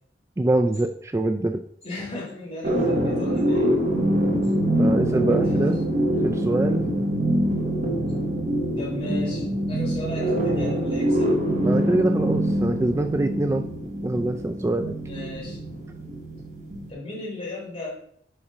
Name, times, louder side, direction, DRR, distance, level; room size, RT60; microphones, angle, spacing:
voice 1, 0.4-1.6 4.8-5.8 6.2-6.8 11.6-13.6 14.0-15.0, right 2 dB, 15° right, 7 dB, 0.3 m, -24 dB
voice 2, 1.8-3.8 4.4-4.5 8.8-11.4 15.0-15.6 16.9-18.0, left 2 dB, 35° left, -4 dB, 3.6 m, -35 dB
sound 1, 2.6-16.9, equal, 45° right, 1.3 m, -24 dB
5.8 x 5.1 x 5.4 m, 0.63 s
head